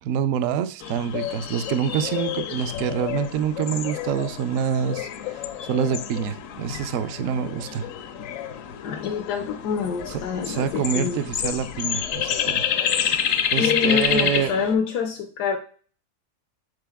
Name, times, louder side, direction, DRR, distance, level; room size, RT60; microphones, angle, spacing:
voice 1, 0.0-5.1 5.7-7.9 10.1-12.6 13.0-13.1 13.5-14.5, right 8 dB, 70° right, 13 dB, 0.8 m, -26 dB
sound 1, 0.8-14.7, left 9 dB, 70° left, 0.8 m, -29 dB
voice 2, 8.8-11.2 13.5-15.6, left 6 dB, 85° left, 3 dB, 1.2 m, -26 dB
6.7 x 4.0 x 3.5 m, 0.42 s
omnidirectional pair, 1.7 m